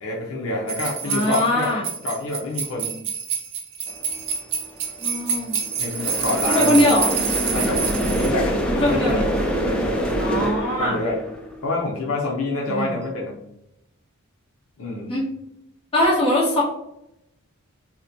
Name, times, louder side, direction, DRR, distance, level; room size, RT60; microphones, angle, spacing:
voice 1, 0.0-1.8 2.0-3.0 5.8-6.9 7.5-7.8 8.1-9.3 9.6-11.2 11.6-13.4 14.8-15.1, left 2 dB, 65° left, -2 dB, 0.6 m, -27 dB
sound 1, 0.7-8.3, right 6 dB, 55° right, 0.6 m, -27 dB
voice 2, 1.0-1.8 5.0-5.6 6.5-7.1 8.8-9.3 10.2-11.0 12.7-12.9 15.1-15.3 15.9-16.6, left 1 dB, 25° left, -4 dB, 1.1 m, -21 dB
sound 2, 3.9-4.3 4.6-11.8, equal, 5° left, 0.4 m, -25 dB
2.8 x 2.1 x 3.9 m, 0.82 s
head